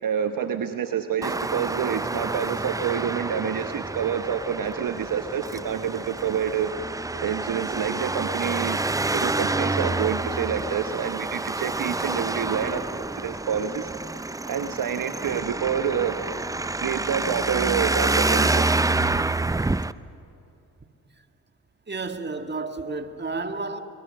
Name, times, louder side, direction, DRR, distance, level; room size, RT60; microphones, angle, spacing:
voice 1, 0.0-6.7 7.2-13.9 14.5-16.2 16.8-18.8, right 8 dB, 55° right, 1.1 m, -28 dB
Traffic noise roadway noise, 1.2-19.9, right 2 dB, 10° right, 0.5 m, -28 dB
voice 2, 21.9-23.8, right 3 dB, 25° right, 1.8 m, -31 dB
23.0 x 21.5 x 6.5 m
hypercardioid pair, 45°, 41 cm